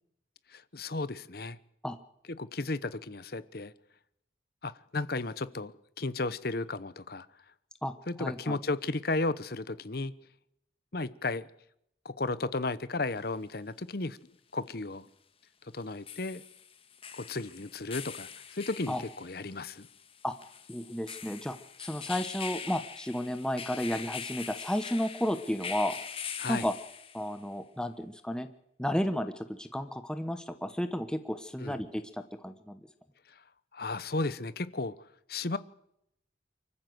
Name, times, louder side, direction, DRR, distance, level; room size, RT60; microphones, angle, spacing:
voice 1, 0.5-1.6 2.4-3.7 4.6-7.3 8.1-10.1 10.9-11.5 12.0-14.2 14.5-15.1 15.7-16.4 17.1-19.9 26.4-26.7 31.6-31.8 33.7-34.9 35.3-35.6, left 3 dB, 55° left, 16 dB, 0.9 m, -34 dB
voice 2, 7.8-8.6 18.9-19.0 20.2-20.3 20.7-26.0 26.5-26.7 27.1-28.5 28.8-32.8, equal, 5° left, 9 dB, 1.0 m, -33 dB
sound 1, 13.2-13.3 15.8-27.4, left 7 dB, 30° left, 1.6 m, -43 dB
24.5 x 14.0 x 7.9 m, 0.78 s
head